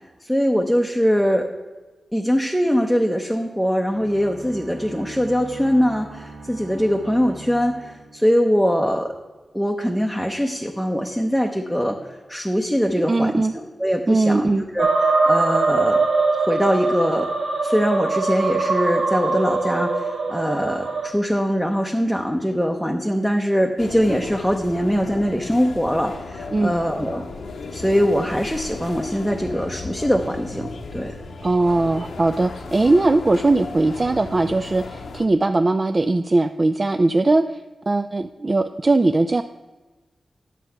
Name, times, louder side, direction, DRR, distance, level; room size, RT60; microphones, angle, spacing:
voice 1, 0.2-1.5 2.1-9.1 9.5-16.0 16.4-17.3 17.6-27.2 27.7-31.1, equal, ahead, 1 dB, 0.7 m, -22 dB
sound 1, 3.9-8.9, right 2 dB, 55° right, 1.6 m, -41 dB
voice 2, 13.1-13.5 14.1-14.6 26.5-26.7 31.4-37.6 37.9-39.4, right 2 dB, 25° right, 9 dB, 0.3 m, -19 dB
sound 2, 14.8-21.1, right 3 dB, 75° right, 1.4 m, -22 dB
sound 3, 23.8-35.3, left 3 dB, 80° left, 0.9 m, -35 dB
10.0 x 7.4 x 5.7 m, 1.2 s
wide cardioid pair, 165°, 0 cm